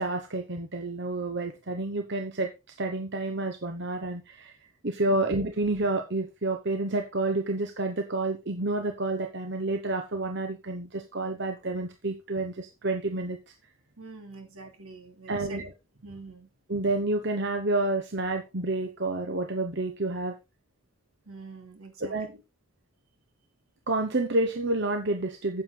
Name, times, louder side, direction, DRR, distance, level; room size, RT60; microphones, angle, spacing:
voice 1, 0.0-4.5 4.8-13.4 15.3-15.6 16.7-20.3 22.0-22.3 23.9-25.6, right 2 dB, 50° right, 6 dB, 1.1 m, -29 dB
voice 2, 14.0-15.7 16.0-16.5 21.2-22.4, right 3 dB, 80° right, 5 dB, 3.0 m, -45 dB
9.8 x 7.8 x 3.9 m, 0.25 s
head